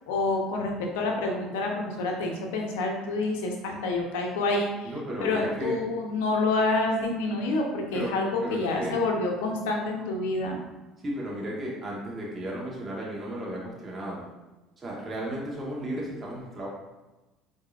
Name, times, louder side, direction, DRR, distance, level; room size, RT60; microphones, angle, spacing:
voice 1, 0.1-4.9 5.2-10.6, left 2 dB, 85° left, 1 dB, 0.6 m, -28 dB
voice 2, 4.8-5.8 7.9-8.1 8.4-9.0 11.0-14.3 14.8-16.7, right 1 dB, 30° right, -4 dB, 1.1 m, -34 dB
4.6 x 2.7 x 2.4 m, 1.1 s
hypercardioid pair, 80°, 0 cm